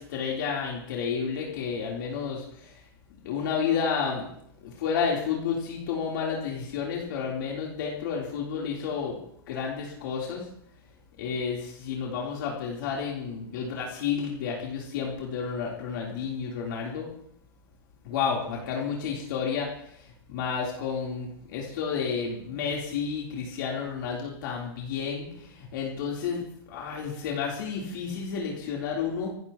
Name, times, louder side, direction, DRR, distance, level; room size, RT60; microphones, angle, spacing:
voice 1, 0.0-2.8 3.2-4.3 4.6-9.2 9.5-10.5 11.2-17.1 18.0-29.3, left 6 dB, 50° left, -3 dB, 3.6 m, -31 dB
26.0 x 14.0 x 3.0 m, 0.68 s
supercardioid pair, 175°, 14 cm